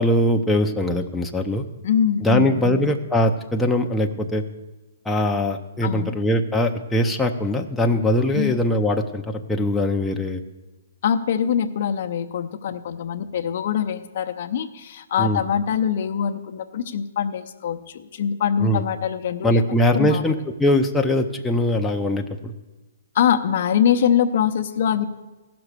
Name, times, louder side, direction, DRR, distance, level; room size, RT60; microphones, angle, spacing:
voice 1, 0.0-1.6 2.2-4.4 5.1-10.4 15.2-15.4 18.6-18.8 19.4-22.5, left 1 dB, 5° left, 2 dB, 0.6 m, -21 dB
voice 2, 1.8-2.9 5.8-6.2 8.3-8.5 11.0-19.6 19.9-20.3 23.1-25.1, left 8 dB, 55° left, 7 dB, 0.7 m, -23 dB
14.5 x 6.1 x 6.6 m, 1.1 s
hypercardioid pair, 140°, 0 cm